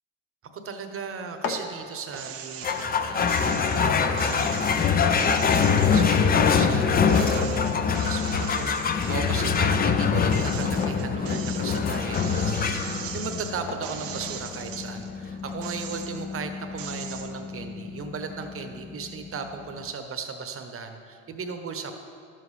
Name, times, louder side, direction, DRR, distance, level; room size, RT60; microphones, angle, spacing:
voice 1, 0.4-21.9, right 5 dB, 35° right, 6 dB, 1.0 m, -37 dB
sound 1, 1.1-15.0, left 5 dB, 55° left, 1.0 m, -44 dB
sound 2, 2.1-2.9 3.3-6.7 7.1-9.7 10.1-15.1 15.5-16.4 16.8-17.3, right 9 dB, 60° right, 0.9 m, -40 dB
sound 3, 2.6-19.4, left 6 dB, 25° left, 0.4 m, -25 dB
11.5 x 7.6 x 3.3 m, 2.2 s
supercardioid pair, 95°, 39 cm